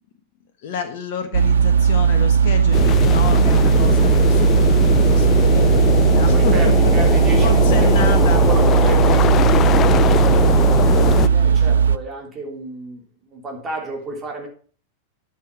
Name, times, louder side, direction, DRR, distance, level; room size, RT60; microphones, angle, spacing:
voice 1, 0.6-8.4, left 7 dB, 50° left, 5 dB, 1.3 m, -30 dB
sound 1, 1.3-12.0, right 7 dB, 65° right, 0.5 m, -16 dB
sound 2, 2.7-11.3, left 11 dB, 30° left, 0.4 m, -21 dB
voice 2, 6.1-14.5, right 1 dB, 20° right, 2 dB, 3.3 m, -31 dB
11.0 x 6.8 x 6.0 m, 0.43 s
figure-of-eight pair, 90°, 0 cm